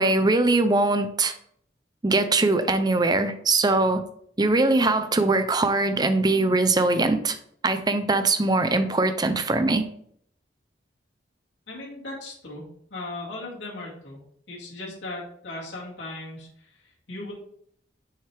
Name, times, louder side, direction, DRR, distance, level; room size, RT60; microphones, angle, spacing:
voice 1, 0.0-1.3 2.0-4.0 4.4-7.4 7.6-9.8, right 2 dB, 20° right, 0.6 m, -21 dB
voice 2, 11.7-12.6 12.9-14.2 14.5-17.3, left 2 dB, 75° left, 2.4 m, -37 dB
6.7 x 5.6 x 3.5 m
head